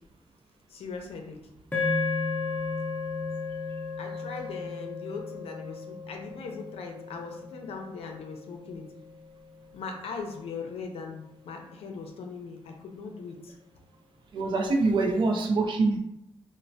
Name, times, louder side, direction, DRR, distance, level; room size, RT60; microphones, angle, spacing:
voice 1, 0.7-1.4 4.0-8.9 9.7-13.5, left 4 dB, 85° left, 3 dB, 0.5 m, -39 dB
sound 1, 1.7-10.1, left 4 dB, 15° left, 0.5 m, -34 dB
voice 2, 14.3-16.0, right 3 dB, 55° right, 2 dB, 0.4 m, -24 dB
3.1 x 2.0 x 2.6 m, 0.81 s
wide cardioid pair, 140°, 10 cm